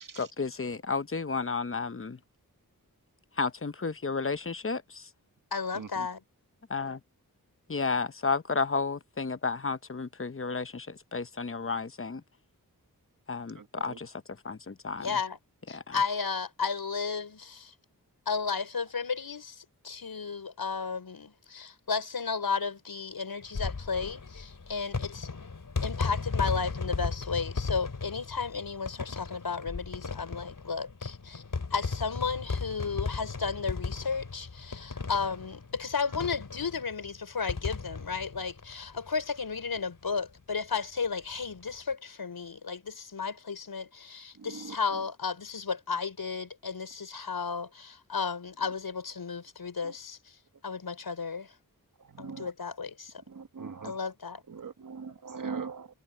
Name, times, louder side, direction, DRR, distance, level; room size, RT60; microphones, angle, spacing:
voice 1, 0.2-2.2 3.4-5.1 6.7-7.0 7.7-12.2 13.3-14.1 14.4-15.1 15.7-16.0, left 4 dB, 35° left, 0.9 m, -32 dB
voice 2, 5.5-6.2 15.0-15.4 15.7-17.7 18.3-25.3 25.8-31.4 31.7-50.4 50.6-51.5 52.2-53.1 53.8-54.4, left 5 dB, 85° left, 5.5 m, -33 dB
voice 3, 13.6-14.0 44.4-44.8 49.8-49.9 52.1-52.5 53.3-54.0 54.5-55.9, right 5 dB, 60° right, 1.6 m, -40 dB
sound 1, 23.4-39.4 39.8-39.9 40.0-40.1 41.4-41.7, left 4 dB, 60° left, 3.1 m, -36 dB
wide cardioid pair, 70°, 36 cm